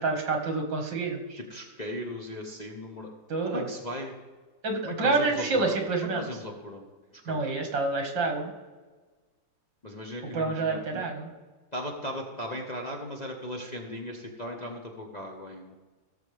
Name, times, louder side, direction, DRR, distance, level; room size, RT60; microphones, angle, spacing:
voice 1, 0.0-1.4 3.3-3.7 4.6-6.2 7.3-8.5 10.3-11.3, right 3 dB, 75° right, 3 dB, 2.3 m, -28 dB
voice 2, 1.4-3.1 3.4-4.1 4.8-7.5 9.8-11.1 11.7-15.8, left 1 dB, 30° left, -1 dB, 0.9 m, -37 dB
17.5 x 6.8 x 3.4 m, 1.3 s
omnidirectional pair, 2.0 m